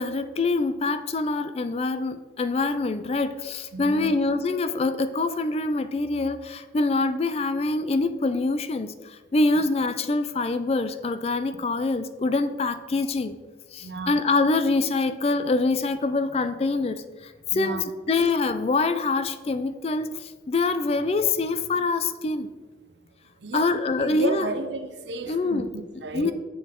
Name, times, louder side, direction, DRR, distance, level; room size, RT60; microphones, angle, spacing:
voice 1, 0.0-8.9 9.3-13.4 13.7-17.0 17.5-22.5 23.5-24.5 25.3-25.7 26.1-26.3, left 3 dB, 35° left, 12 dB, 0.3 m, -25 dB
voice 2, 3.7-4.1 13.8-14.2 17.5-17.9 23.4-26.3, right 2 dB, 85° right, 9 dB, 0.7 m, -33 dB
7.4 x 6.9 x 3.7 m, 1.3 s
head